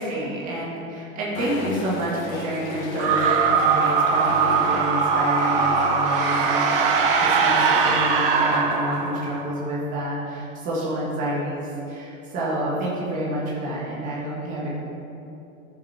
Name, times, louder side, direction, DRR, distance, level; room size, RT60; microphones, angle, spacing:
voice 1, 0.0-14.8, right 1 dB, 20° right, -6 dB, 1.8 m, -29 dB
sound 1, 1.3-9.6, left 4 dB, 70° left, 1.5 m, -35 dB
sound 2, 3.0-9.4, right 5 dB, 40° right, 1.0 m, -21 dB
14.5 x 7.2 x 4.3 m, 2.8 s
supercardioid pair, 170°, 43 cm